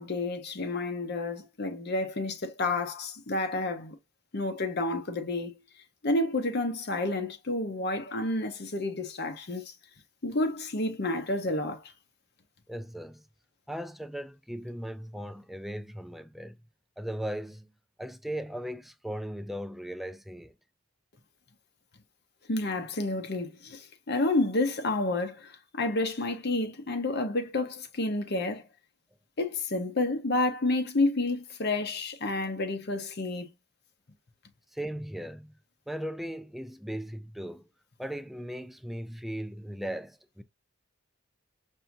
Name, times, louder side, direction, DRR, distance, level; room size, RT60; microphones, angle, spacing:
voice 1, 0.0-4.0 4.3-5.6 6.0-9.7 10.2-11.9 22.5-28.6 29.4-33.5, left 2 dB, 50° left, 0.8 m, -30 dB
voice 2, 12.7-13.3 13.7-16.6 17.0-17.7 18.0-20.5 34.7-35.6 35.9-37.7 38.0-40.4, equal, ahead, 0.4 m, -37 dB
5.8 x 2.7 x 2.6 m
head